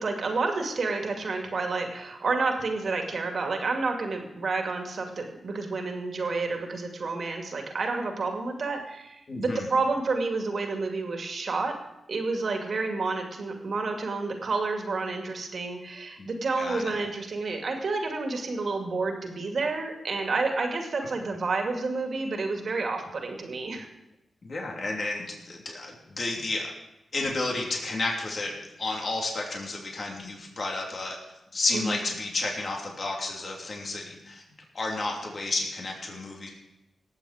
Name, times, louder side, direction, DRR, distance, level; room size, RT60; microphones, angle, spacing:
voice 1, 0.0-11.7 12.1-23.9 31.7-32.0, right 3 dB, 65° right, 3 dB, 2.3 m, -30 dB
voice 2, 9.3-9.7 16.2-16.3 16.6-17.0 24.4-26.7 27.1-31.2 31.5-34.4 34.7-36.5, left 2 dB, 55° left, -1 dB, 3.0 m, -31 dB
18.5 x 7.5 x 5.0 m, 0.91 s
cardioid pair, 45°, 0 cm